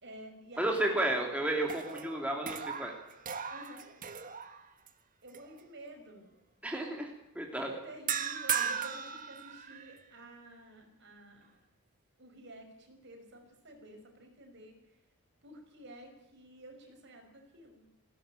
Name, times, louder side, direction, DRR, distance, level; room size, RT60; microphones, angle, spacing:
voice 1, 0.0-0.9 3.5-3.9 5.2-6.3 7.7-11.6 12.2-14.7 15.4-17.8, right 1 dB, 55° right, 4 dB, 5.8 m, -51 dB
sound 1, 0.5-1.2 1.6-4.9 5.3-5.6 8.1-10.0, right 7 dB, 35° right, 1.5 m, -37 dB
voice 2, 0.6-2.9 6.6-7.7, right 1 dB, 5° right, 1 dB, 2.8 m, -32 dB
20.0 x 16.5 x 9.1 m, 0.90 s
head